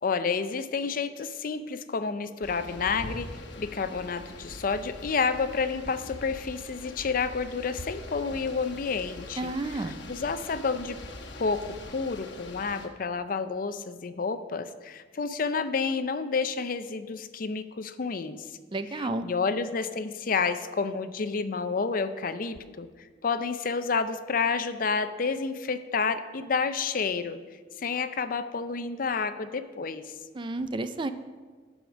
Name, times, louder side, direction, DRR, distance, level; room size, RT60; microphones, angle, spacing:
voice 1, 0.0-11.0 11.4-18.4 18.9-27.4 27.8-30.0, left 5 dB, 50° left, 11 dB, 0.5 m, -30 dB
sound 1, 2.4-12.9, left 2 dB, 70° left, 1.2 m, -43 dB
voice 2, 9.4-10.0 18.7-19.3 30.3-31.1, right 2 dB, 25° right, 10 dB, 0.4 m, -31 dB
12.5 x 5.0 x 6.2 m, 1.5 s
head